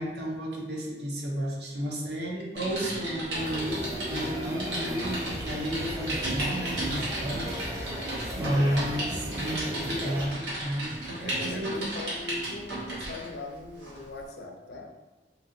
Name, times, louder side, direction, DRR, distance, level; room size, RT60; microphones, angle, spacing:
voice 1, 0.0-8.1 8.4-11.8, equal, 70° right, -1 dB, 0.6 m, -32 dB
Typing, 2.5-13.3 13.8-14.0, right 1 dB, 85° right, 1.0 m, -35 dB
sound 1, 3.3-10.3, equal, 20° right, 0.4 m, -36 dB
voice 2, 11.2-14.9, left 3 dB, 70° left, 3 dB, 0.4 m, -40 dB
3.0 x 2.6 x 2.6 m, 1.2 s
head